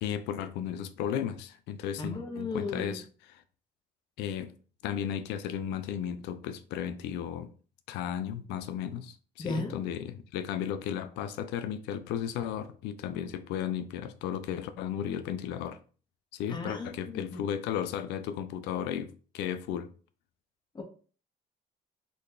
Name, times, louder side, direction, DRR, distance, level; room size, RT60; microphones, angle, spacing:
voice 1, 0.0-3.0 3.3-3.4 4.2-4.5 4.8-7.5 7.9-15.8 16.3-19.9, left 9 dB, 85° left, 0.4 m, -34 dB
voice 2, 2.0-3.0 9.4-9.7 16.5-17.4 20.7-20.8, left 3 dB, 25° left, 0.9 m, -36 dB
3.8 x 2.4 x 3.2 m
cardioid pair, 110°, 17 cm